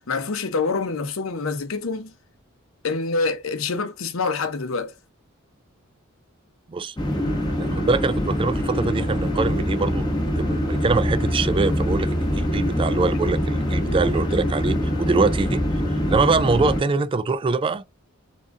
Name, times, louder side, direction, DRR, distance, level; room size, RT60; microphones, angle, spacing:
voice 1, 0.0-2.1 2.8-4.9, left 4 dB, 85° left, 0.8 m, -26 dB
sound 1, 7.0-16.8, equal, 20° left, 1.0 m, -24 dB
voice 2, 7.6-10.1 10.4-15.6 16.1-17.8, right 4 dB, 25° right, 0.3 m, -23 dB
3.8 x 3.6 x 3.7 m
head